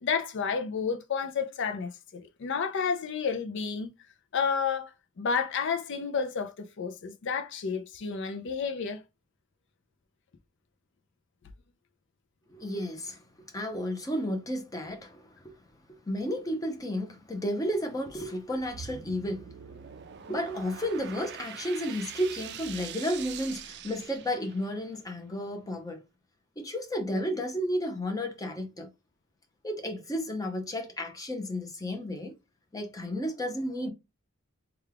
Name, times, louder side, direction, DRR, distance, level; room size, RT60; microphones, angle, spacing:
voice 1, 0.0-3.9 4.3-9.0, left 6 dB, 60° left, 0.4 m, -31 dB
voice 2, 12.5-15.6 15.9-19.6 20.2-26.0 26.6-28.9 29.6-32.3 32.7-33.9, equal, 15° left, 0.7 m, -32 dB
sound 1, 18.5-24.8, right 9 dB, 55° right, 0.4 m, -44 dB
3.4 x 2.3 x 3.3 m
head